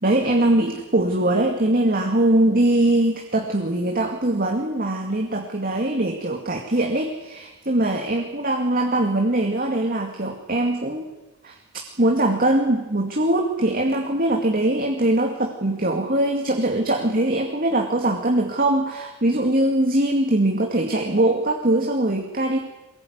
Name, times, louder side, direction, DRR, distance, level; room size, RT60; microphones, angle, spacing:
voice 1, 0.0-11.1 11.4-11.6 12.0-22.6, right 1 dB, 45° right, 3 dB, 2.3 m, -22 dB
23.5 x 20.0 x 9.6 m, 1.1 s
head